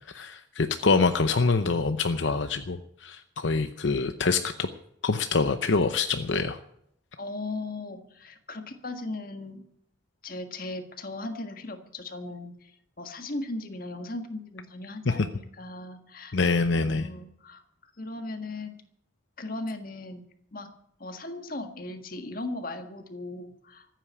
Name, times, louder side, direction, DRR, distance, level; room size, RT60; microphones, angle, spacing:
voice 1, 0.1-4.7 5.0-6.6 15.1-15.3 16.3-17.1, left 4 dB, 70° left, 9 dB, 0.7 m, -25 dB
voice 2, 7.2-9.6 10.2-12.7 13.0-16.4 16.8-17.6 18.0-18.8 19.4-20.2 20.5-20.7 21.0-23.9, left 2 dB, 45° left, 7 dB, 1.6 m, -37 dB
14.5 x 9.1 x 8.3 m, 0.74 s
head